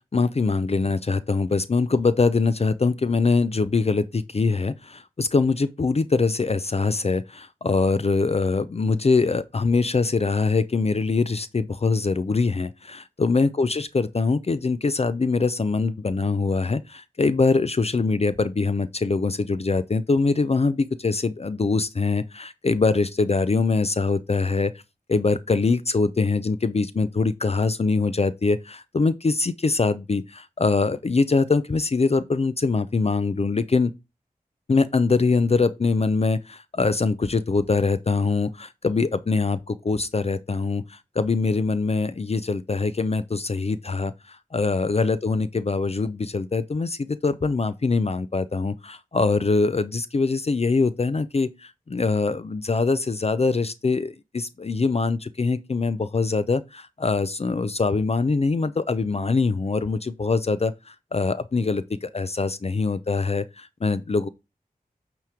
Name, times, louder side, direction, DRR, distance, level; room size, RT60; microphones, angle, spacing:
voice 1, 0.1-24.7 25.1-33.9 34.7-64.3, left 4 dB, 45° left, 0.5 m, -23 dB
9.0 x 3.1 x 4.9 m
wide cardioid pair, 55°, 15 cm